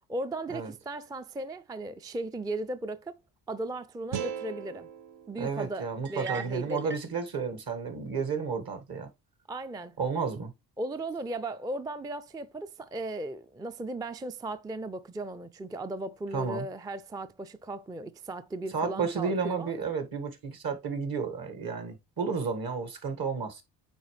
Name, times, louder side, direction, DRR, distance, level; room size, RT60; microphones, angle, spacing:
voice 1, 0.1-3.2 3.5-4.9 5.3-6.9 9.5-10.0 10.8-19.7, right 2 dB, 10° right, 0.3 m, -36 dB
sound 1, 4.1-7.2, right 8 dB, 80° right, 0.8 m, -41 dB
voice 2, 5.4-9.1 10.0-10.5 16.3-16.7 18.7-23.6, right 5 dB, 55° right, 1.8 m, -32 dB
sound 2, 6.0-7.2, right 6 dB, 30° right, 0.7 m, -41 dB
9.0 x 3.7 x 3.2 m
cardioid pair, 85°, 42 cm